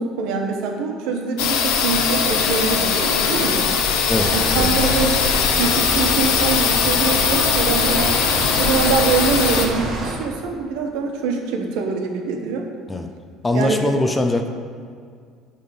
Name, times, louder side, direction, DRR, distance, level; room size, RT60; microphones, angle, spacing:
voice 1, 0.0-3.6 4.3-5.2 5.6-8.2 8.6-12.6 13.5-13.9, right 5 dB, 80° right, 2 dB, 1.3 m, -24 dB
sound 1, 1.4-9.7, left 6 dB, 85° left, 1.0 m, -20 dB
voice 2, 4.1-5.0 12.9-13.1 13.4-14.5, left 2 dB, 15° left, 5 dB, 0.6 m, -22 dB
sound 2, 4.1-10.1, right 2 dB, 40° right, 1.7 m, -28 dB
9.7 x 3.7 x 6.8 m, 2.1 s
cardioid pair, 145°, 0 cm